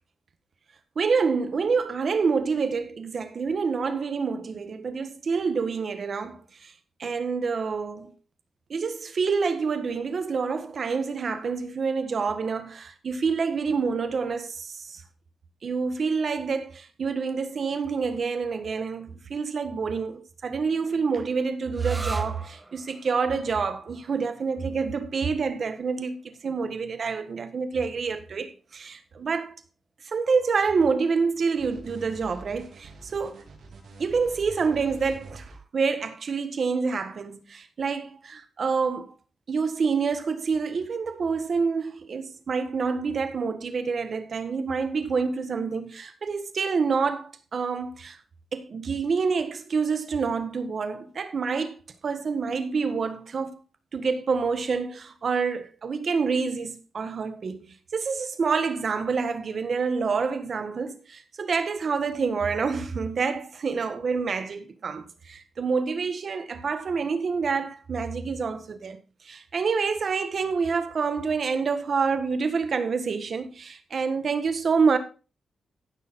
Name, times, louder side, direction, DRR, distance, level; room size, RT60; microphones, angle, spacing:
voice 1, 0.9-6.7 7.0-8.1 8.7-15.0 15.6-29.5 30.0-33.4 34.0-39.1 39.5-48.2 48.5-53.6 53.9-69.0 69.2-75.0, right 5 dB, 55° right, 1.5 m, -27 dB
sound 1, 21.7-29.1, right 2 dB, 25° right, 1.4 m, -44 dB
sound 2, 31.6-35.6, right 3 dB, 75° right, 4.0 m, -45 dB
15.5 x 6.3 x 4.2 m
cardioid pair, 90°, 0 cm